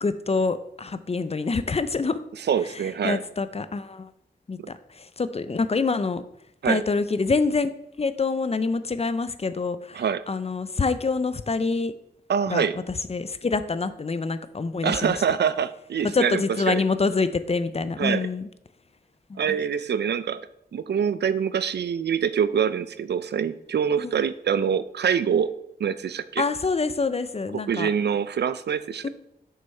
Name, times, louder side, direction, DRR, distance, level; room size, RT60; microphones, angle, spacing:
voice 1, 0.0-2.2 3.0-4.1 4.5-6.2 6.6-7.7 8.0-11.9 12.5-12.8 13.1-15.1 16.1-18.5 19.3-19.6 24.0-24.2 26.4-27.9 29.0-29.1, left 4 dB, 35° left, 13 dB, 0.5 m, -26 dB
voice 2, 2.5-3.2 4.6-4.7 6.6-6.8 9.9-10.2 12.3-12.8 14.8-16.8 18.0-18.3 19.4-20.4 20.7-25.5 25.8-26.4 27.5-29.1, right 7 dB, 80° right, 15 dB, 0.4 m, -25 dB
6.4 x 5.6 x 4.2 m, 0.78 s
wide cardioid pair, 70°, 17 cm